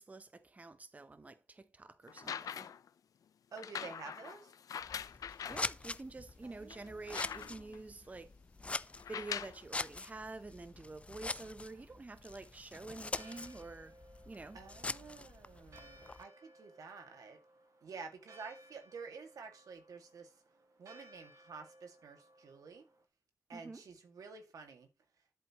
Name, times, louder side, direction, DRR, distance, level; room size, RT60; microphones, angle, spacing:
voice 1, 0.0-2.7 5.5-8.3 8.6-14.0 14.3-14.6 23.5-23.8, right 3 dB, 25° right, 0.7 m, -48 dB
sound 1, 2.1-2.9 3.6-5.7 6.3-6.4 6.7-7.8 8.9-9.6 10.6-10.7, left 8 dB, 85° left, 0.5 m, -43 dB
voice 2, 3.5-4.5 6.4-7.9 14.5-17.4 17.8-20.3 20.8-22.8 23.5-24.9, right 5 dB, 80° right, 2.0 m, -50 dB
Scissors, 4.8-16.2, left 3 dB, 20° left, 0.4 m, -44 dB
Church bell, 12.8-23.0, right 1 dB, 65° right, 1.9 m, -61 dB
11.0 x 8.1 x 3.0 m
wide cardioid pair, 105°, 6 cm